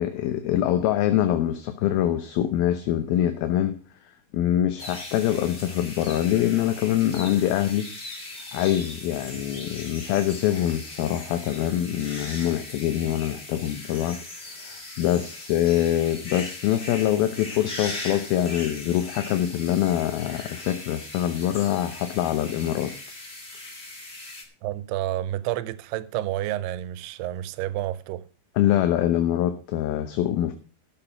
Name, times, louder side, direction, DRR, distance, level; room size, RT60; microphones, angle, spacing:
voice 1, 0.0-3.8 4.3-7.9 8.5-14.2 14.6-22.9 28.6-30.5, left 12 dB, 75° left, 2.6 m, -24 dB
sound 1, 4.8-24.4, left 2 dB, 45° left, 0.8 m, -39 dB
voice 2, 24.6-28.3, right 14 dB, 85° right, 2.7 m, -30 dB
12.5 x 7.0 x 5.8 m
omnidirectional pair, 4.6 m